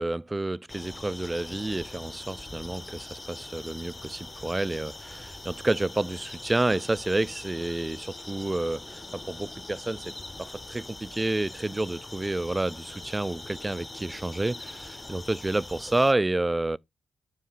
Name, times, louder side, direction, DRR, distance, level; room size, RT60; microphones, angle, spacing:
voice 1, 0.0-16.8, right 2 dB, 25° right, 0.3 m, -29 dB
sound 1, 0.7-16.1, left 2 dB, 25° left, 0.8 m, -42 dB
7.3 x 2.8 x 5.5 m
cardioid pair, 55°, 0 cm